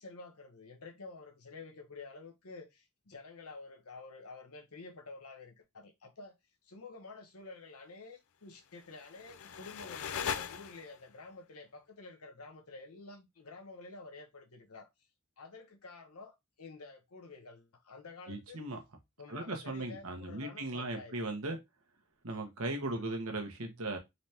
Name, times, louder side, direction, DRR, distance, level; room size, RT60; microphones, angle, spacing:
voice 1, 0.0-6.3 6.6-14.9 15.4-18.6 19.2-21.4 22.8-23.1, left 3 dB, 85° left, 1.0 m, -50 dB
sound 1, 8.8-11.1, left 7 dB, 70° left, 0.4 m, -40 dB
voice 2, 18.3-18.8 19.3-21.6 22.2-24.0, right 2 dB, 75° right, 1.2 m, -37 dB
4.1 x 3.3 x 2.8 m
head